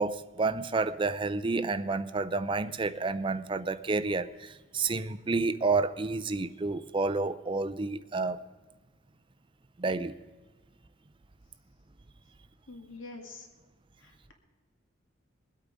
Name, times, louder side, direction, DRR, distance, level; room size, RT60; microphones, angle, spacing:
voice 1, 0.0-8.4 9.8-10.1, right 3 dB, 25° right, 0.5 m, -30 dB
voice 2, 12.7-13.5 14.0-14.3, left 3 dB, 85° left, 1.8 m, -46 dB
22.0 x 8.4 x 5.2 m
head